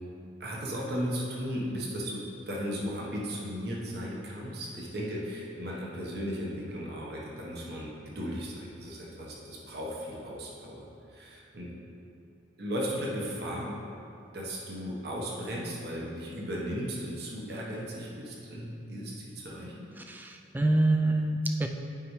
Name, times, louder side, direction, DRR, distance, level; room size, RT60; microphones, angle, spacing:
voice 1, 0.4-11.7 12.6-13.8 14.3-19.8, equal, 55° right, -4 dB, 1.1 m, -36 dB
voice 2, 20.1-21.7, right 2 dB, 10° right, 4 dB, 0.3 m, -26 dB
8.6 x 5.5 x 3.1 m, 2.7 s
head